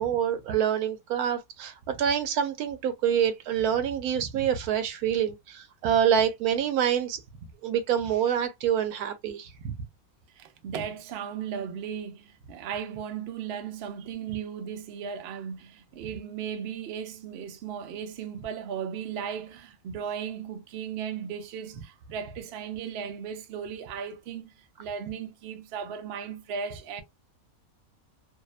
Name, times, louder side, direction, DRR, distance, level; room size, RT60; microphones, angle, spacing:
voice 1, 0.0-7.2 7.6-9.7, right 9 dB, 80° right, 1.1 m, -26 dB
voice 2, 10.3-24.5 24.8-27.0, right 7 dB, 65° right, 0.6 m, -36 dB
2.8 x 2.1 x 2.3 m
omnidirectional pair, 1.6 m